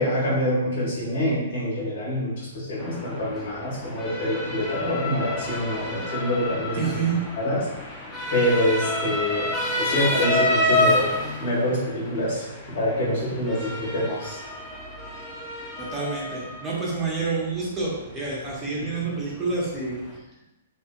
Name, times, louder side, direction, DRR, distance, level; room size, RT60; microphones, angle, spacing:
voice 1, 0.0-7.0 7.4-7.6 8.3-9.5 9.8-11.1 11.4-14.4, left 1 dB, 55° left, -8 dB, 1.4 m, -26 dB
Motor vehicle (road) / Siren, 2.8-20.2, left 1 dB, 15° left, 0.5 m, -30 dB
voice 2, 6.8-7.2 15.8-20.0, right 4 dB, 20° right, -5 dB, 0.8 m, -28 dB
2.8 x 2.6 x 2.3 m, 0.98 s
figure-of-eight pair, 115°, 0 cm